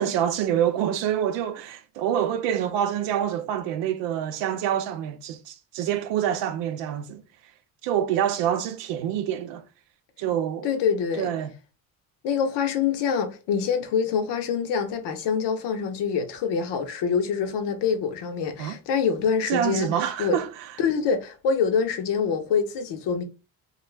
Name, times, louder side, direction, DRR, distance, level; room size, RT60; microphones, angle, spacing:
voice 1, 0.0-7.2 7.8-9.6 10.2-10.7 11.2-11.5 18.6-18.8 19.5-20.7, right 10 dB, 90° right, 0.5 m, -26 dB
voice 2, 10.6-11.3 12.2-19.9 20.2-20.4 20.8-23.2, left 6 dB, 75° left, 0.7 m, -25 dB
2.3 x 2.2 x 3.1 m
supercardioid pair, 70°, 42 cm